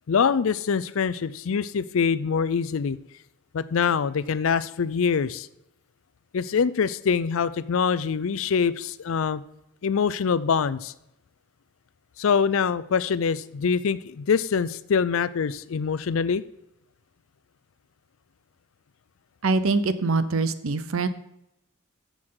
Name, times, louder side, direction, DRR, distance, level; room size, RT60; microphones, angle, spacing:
voice 1, 0.1-3.0 3.5-5.5 6.3-9.4 9.8-10.9 12.2-16.4, left 6 dB, 70° left, 16 dB, 0.4 m, -24 dB
voice 2, 19.4-21.1, right 3 dB, 75° right, 13 dB, 0.7 m, -24 dB
14.0 x 6.3 x 3.8 m, 0.84 s
head